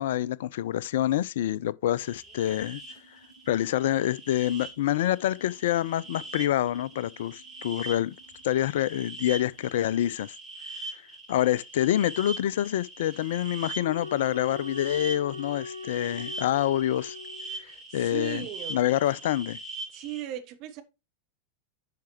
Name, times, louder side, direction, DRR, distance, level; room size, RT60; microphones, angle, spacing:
voice 1, 0.0-2.8 3.5-8.1 8.4-10.4 10.9-11.0 11.3-17.2 17.6-18.4 18.7-19.6, left 12 dB, 55° left, 0.3 m, -27 dB
sound 1, 2.0-20.2, right 2 dB, 5° right, 3.5 m, -42 dB
sound 2, 2.6-10.0, right 2 dB, 30° left, 5.5 m, -59 dB
sound 3, 13.7-17.7, left 3 dB, 85° left, 1.0 m, -40 dB
voice 2, 17.6-18.9 19.9-20.8, right 11 dB, 40° right, 1.4 m, -38 dB
10.5 x 5.7 x 3.0 m
figure-of-eight pair, 90°, 0 cm